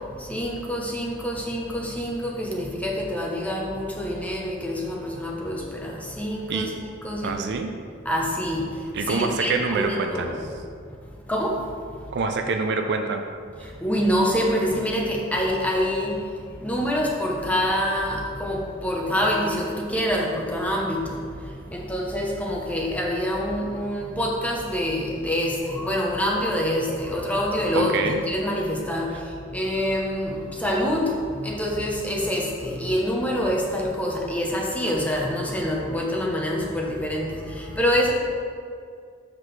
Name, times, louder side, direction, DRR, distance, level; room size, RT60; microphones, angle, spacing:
voice 1, 0.2-6.7 7.0-7.4 8.1-8.6 9.1-10.4 11.3-11.6 13.8-16.2 16.6-21.2 21.7-29.1 29.5-31.1 31.4-38.1, equal, 5° left, -1 dB, 0.8 m, -26 dB
voice 2, 7.2-7.7 8.9-10.3 12.1-13.2 27.7-28.2, right 4 dB, 55° right, 5 dB, 0.5 m, -25 dB
7.3 x 6.0 x 3.2 m, 2.3 s
head